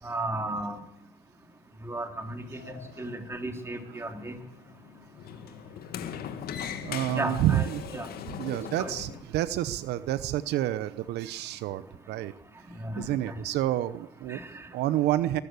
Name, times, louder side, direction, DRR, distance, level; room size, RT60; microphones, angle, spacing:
voice 1, 0.0-0.8 1.8-4.4 7.1-7.7 7.9-8.1 8.8-8.9 12.8-13.0 14.3-14.7, right 2 dB, 15° right, 6 dB, 3.3 m, -34 dB
Sliding door, 2.2-9.2, left 8 dB, 65° left, 2.2 m, -41 dB
voice 2, 6.8-8.1 8.4-12.3 12.7-14.4 14.7-15.4, right 13 dB, 80° right, 15 dB, 0.9 m, -29 dB
23.0 x 14.0 x 8.2 m, 0.74 s
cardioid pair, 110°, 17 cm